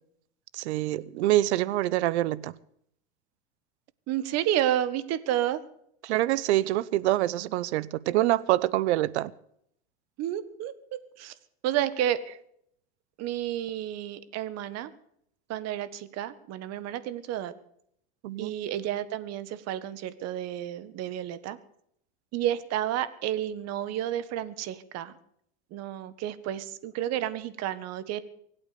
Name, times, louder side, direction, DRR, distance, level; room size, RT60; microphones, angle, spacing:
voice 1, 0.5-2.5 6.0-9.3 18.2-18.5, right 15 dB, 80° right, 0.9 m, -25 dB
voice 2, 4.1-5.6 10.2-10.7 11.2-11.3 11.6-12.2 13.2-14.9 15.5-17.5 18.4-21.6 22.3-25.1 25.7-28.2, right 12 dB, 50° right, 1.6 m, -31 dB
24.0 x 8.9 x 6.7 m
supercardioid pair, 110°, 33 cm